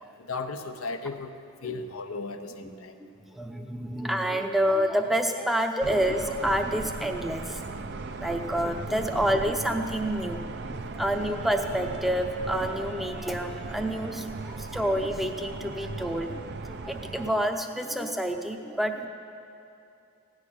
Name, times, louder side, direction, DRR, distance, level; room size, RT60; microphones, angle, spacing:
voice 1, 0.2-1.3 1.6-3.0, left 3 dB, 85° left, 7 dB, 0.8 m, -35 dB
voice 2, 3.2-10.4 10.7-19.1, equal, ahead, 4 dB, 0.7 m, -28 dB
sound 1, 5.8-17.3, right 3 dB, 50° right, 0.6 m, -37 dB
16.0 x 6.4 x 9.9 m, 2.8 s
head